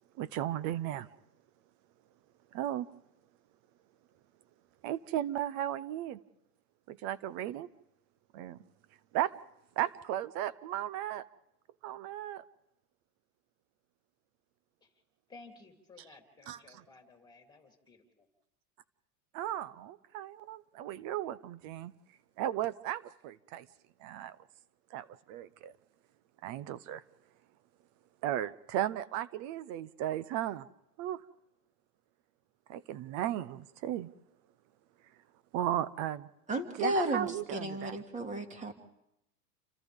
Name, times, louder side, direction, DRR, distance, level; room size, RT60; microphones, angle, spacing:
voice 1, 0.2-1.1 2.5-2.9 4.8-6.2 6.9-7.7 8.3-8.6 9.1-9.3 9.8-11.2 11.8-12.4 16.5-16.6 19.3-21.9 22.4-23.6 24.0-24.3 24.9-25.7 26.4-27.0 28.2-30.6 31.0-31.2 32.7-34.1 35.5-36.3 36.8-38.0, right 12 dB, 40° right, 17 dB, 0.7 m, -35 dB
voice 2, 15.3-18.0, left 3 dB, 10° left, 2 dB, 3.5 m, -55 dB
voice 3, 36.5-38.7, right 1 dB, 15° right, 5 dB, 2.3 m, -33 dB
29.5 x 25.0 x 3.6 m, 0.82 s
supercardioid pair, 140°, 46 cm